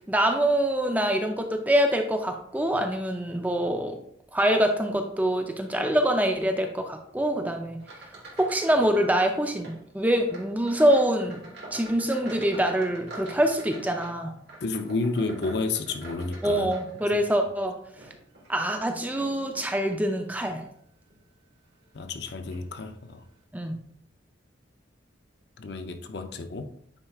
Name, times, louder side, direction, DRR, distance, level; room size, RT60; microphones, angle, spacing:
voice 1, 0.1-4.0 4.3-7.8 8.4-11.4 11.7-14.3 16.4-18.1 18.5-20.6 23.5-23.8, right 1 dB, 10° right, 0.5 m, -25 dB
sound 1, 7.8-9.0 9.2-9.8 10.3-17.4 17.9-19.7 20.3-20.6 21.1-21.2 22.1-22.2 22.5-22.7, right 2 dB, 65° right, 1.9 m, -45 dB
voice 2, 14.6-16.7 21.9-23.2 25.6-26.7, left 3 dB, 60° left, 0.5 m, -31 dB
8.8 x 4.6 x 2.4 m
head